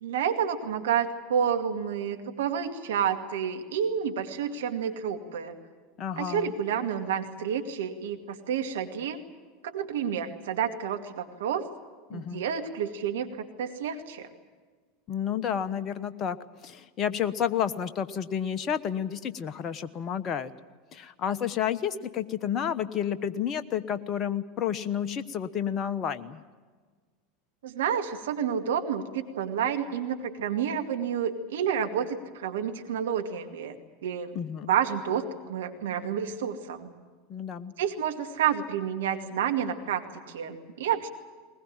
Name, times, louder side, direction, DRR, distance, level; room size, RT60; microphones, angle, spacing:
voice 1, 0.0-5.5 6.2-9.2 9.6-11.7 12.1-14.3 27.6-33.8 34.0-34.4 34.6-36.9 37.8-41.1, right 8 dB, 70° right, 5 dB, 2.2 m, -29 dB
voice 2, 6.0-6.5 12.1-12.4 15.1-16.4 16.6-20.5 20.9-26.4 34.3-34.7 37.3-37.7, left 9 dB, 35° left, 11 dB, 1.1 m, -30 dB
21.0 x 20.5 x 9.1 m, 1.5 s
figure-of-eight pair, 80°, 0 cm